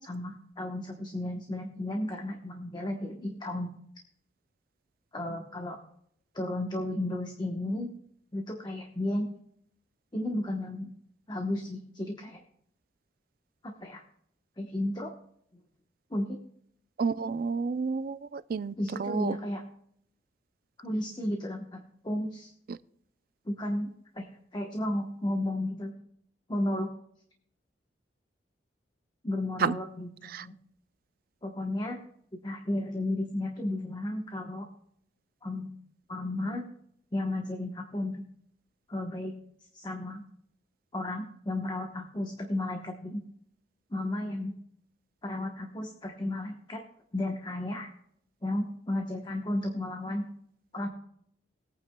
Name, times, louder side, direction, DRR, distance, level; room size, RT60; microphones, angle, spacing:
voice 1, 0.0-3.7 5.1-5.8 6.3-7.9 8.3-9.3 10.1-10.9 11.3-12.4 13.6-14.0 14.6-15.1 16.1-16.4 18.8-19.6 20.8-22.5 23.5-23.9 24.1-24.3 24.5-25.9 26.5-26.9 29.2-30.5 31.4-32.0 32.4-34.7 35.4-35.7 36.1-36.6 37.1-38.2 38.9-39.3 39.7-40.2 40.9-43.2 43.9-44.5 45.2-46.8 47.1-47.9 48.4-50.2 50.7-50.9, left 1 dB, 25° left, 2 dB, 1.0 m, -33 dB
voice 2, 17.0-18.7 19.0-19.4 29.6-29.8 30.3-30.4, right 5 dB, 50° right, 16 dB, 0.4 m, -30 dB
20.5 x 9.2 x 2.2 m, 0.68 s
head